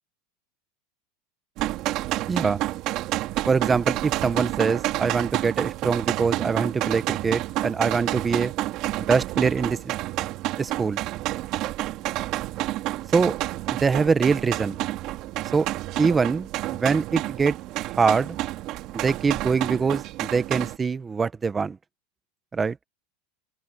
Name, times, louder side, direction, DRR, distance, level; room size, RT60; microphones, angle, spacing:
sound 1, 1.6-20.8, right 16 dB, 40° right, 2.5 m, -29 dB
voice 1, 2.3-2.6 3.5-8.5 9.0-9.9 10.6-11.0 13.1-13.4 13.7-14.8 15.5-15.7 16.0-18.4 18.9-21.8 22.5-22.8, right 5 dB, 15° right, 0.9 m, -24 dB
open air
supercardioid pair, 165°, 0 cm